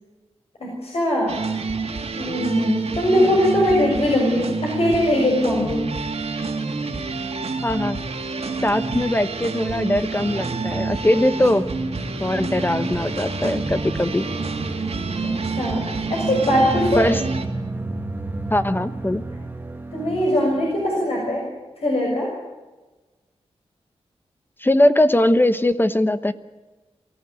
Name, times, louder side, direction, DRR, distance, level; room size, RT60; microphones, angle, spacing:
voice 1, 0.6-1.4 2.2-5.9 6.2-6.3 15.2-17.1 19.9-21.5 21.8-22.3, left 1 dB, 65° left, -2 dB, 6.3 m, -21 dB
sound 1, 1.3-17.5, right 4 dB, 75° right, 2.7 m, -28 dB
voice 2, 7.6-8.0 8.6-11.7 12.2-14.3 17.0-17.2 18.5-19.2 24.6-26.3, left 1 dB, 20° left, 11 dB, 1.0 m, -20 dB
sound 2, 10.1-20.9, right 2 dB, 15° right, 1.8 m, -32 dB
23.5 x 15.0 x 9.0 m, 1.2 s
wide cardioid pair, 80°, 11 cm